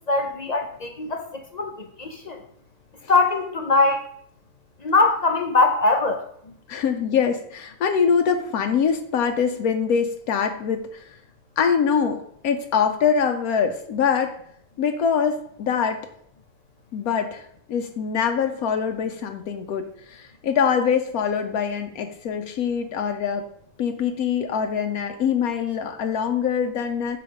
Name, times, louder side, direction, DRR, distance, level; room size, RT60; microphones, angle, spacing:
voice 1, 0.1-2.4 3.1-4.1 4.8-6.2, left 3 dB, 55° left, 4 dB, 0.4 m, -22 dB
voice 2, 6.7-11.0 11.6-14.4 14.8-16.0 16.9-23.5 23.8-27.2, left 7 dB, 80° left, 6 dB, 1.1 m, -24 dB
6.8 x 3.9 x 5.0 m, 0.66 s
omnidirectional pair, 1.5 m